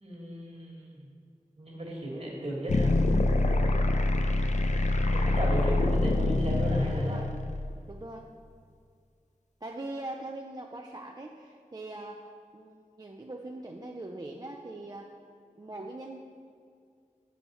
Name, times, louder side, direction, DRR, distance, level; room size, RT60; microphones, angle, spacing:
voice 1, 0.0-1.1 1.6-2.9 5.1-7.2, right 1 dB, 45° right, -3 dB, 1.5 m, -35 dB
sound 1, 2.7-7.7, left 2 dB, 55° left, 0.4 m, -25 dB
voice 2, 6.9-7.3 7.9-8.3 9.6-15.1 15.6-16.2, right 2 dB, 30° right, 2 dB, 0.4 m, -41 dB
7.1 x 4.7 x 4.1 m, 2.2 s
wide cardioid pair, 50°, 14 cm